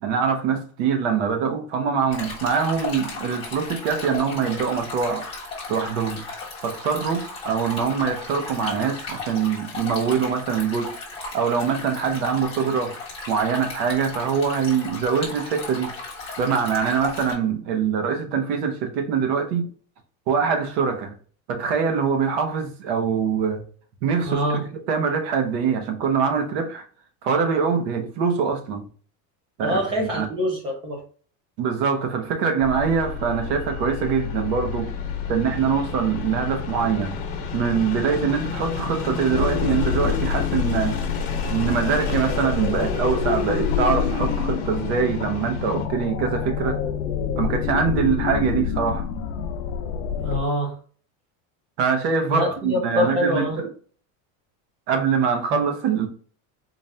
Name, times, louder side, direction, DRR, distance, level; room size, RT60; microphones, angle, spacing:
voice 1, 0.0-5.3 5.7-6.2 6.6-10.9 11.3-12.9 13.3-15.9 16.4-19.7 20.3-21.1 21.5-23.6 24.0-26.9 27.2-28.9 29.6-30.3 31.6-34.9 35.3-37.2 37.5-41.0 41.5-46.8 47.4-49.1 51.8-53.7 54.9-56.1, right 6 dB, 50° right, 0.8 m, -23 dB
Stream, 2.1-17.3, left 3 dB, 15° left, 1.0 m, -35 dB
voice 2, 24.3-24.6 29.6-31.0 50.2-50.7 52.3-53.6, equal, 15° right, 0.3 m, -24 dB
sound 1, 32.6-45.9, left 6 dB, 40° left, 0.9 m, -31 dB
sound 2, 39.3-50.4, left 7 dB, 65° left, 0.6 m, -27 dB
4.2 x 2.4 x 3.3 m
supercardioid pair, 180°, 41 cm